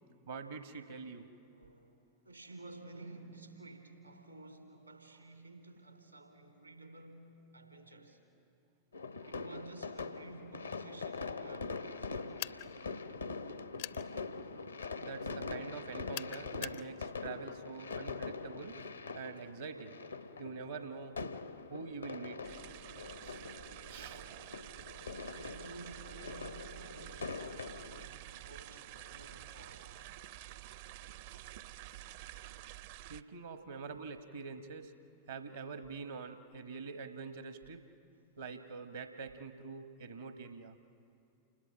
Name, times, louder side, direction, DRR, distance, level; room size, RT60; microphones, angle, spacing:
voice 1, 0.3-1.3 15.0-18.8 19.1-20.0 20.4-21.2 21.7-22.6 23.2-23.4 23.9-24.4 33.1-34.9 35.3-37.8 38.4-40.8, right 5 dB, 70° right, 8 dB, 1.1 m, -45 dB
voice 2, 1.1-8.2 9.3-12.9 23.7-24.4 25.3-30.3 38.1-38.3, right 2 dB, 85° right, 4 dB, 3.5 m, -54 dB
sound 1, 8.9-28.1, left 4 dB, 80° left, 0.9 m, -43 dB
sound 2, 12.4-12.7 13.8-14.0 16.1-16.8, left 14 dB, 55° left, 0.6 m, -41 dB
sound 3, 22.4-33.2, right 14 dB, 50° right, 0.6 m, -49 dB
29.0 x 20.5 x 7.7 m, 2.5 s
figure-of-eight pair, 90°, 0 cm